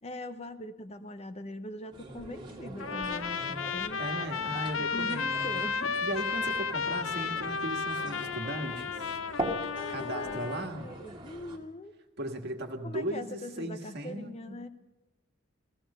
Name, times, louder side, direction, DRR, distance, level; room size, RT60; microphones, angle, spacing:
voice 1, 0.0-4.0 4.8-6.0 9.8-11.9 12.8-14.7, left 1 dB, 35° left, 10 dB, 0.7 m, -42 dB
sound 1, 1.9-11.6, right 1 dB, 25° right, 1.8 m, -42 dB
Trumpet, 2.8-10.7, left 5 dB, 85° left, 0.7 m, -33 dB
voice 2, 4.0-5.6 6.0-8.9 9.9-10.9 12.2-14.6, right 1 dB, 55° right, 4 dB, 1.6 m, -37 dB
16.0 x 15.0 x 5.6 m, 1.0 s
head